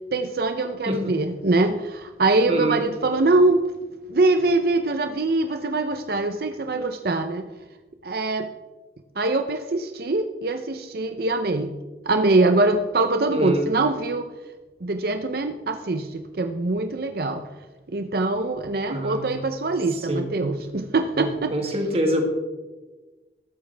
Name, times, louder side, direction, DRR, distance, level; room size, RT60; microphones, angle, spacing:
voice 1, 0.1-3.6 4.1-7.5 8.0-8.5 9.2-11.7 12.1-14.3 14.8-17.4 17.9-21.5, right 2 dB, 55° right, 6 dB, 0.6 m, -23 dB
voice 2, 2.5-2.8 13.3-13.6 18.9-19.3 19.9-20.3 21.1-22.2, right 1 dB, 35° right, 3 dB, 1.7 m, -26 dB
13.5 x 12.0 x 3.4 m, 1.2 s
head